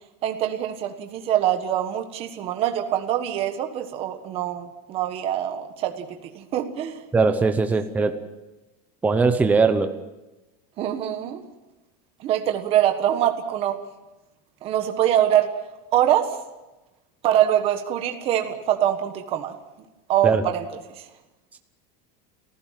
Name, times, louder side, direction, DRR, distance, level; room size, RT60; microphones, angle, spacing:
voice 1, 0.2-7.0 10.8-11.4 12.2-13.8 14.6-15.5 15.9-16.4 17.2-19.5 20.1-20.7 21.0-21.1, right 11 dB, 30° right, 6 dB, 1.5 m, -24 dB
voice 2, 7.1-8.2 9.0-9.9 20.2-20.4, right 4 dB, 10° right, 7 dB, 0.8 m, -20 dB
28.5 x 15.5 x 7.5 m, 1.0 s
cardioid pair, 180°, 19 cm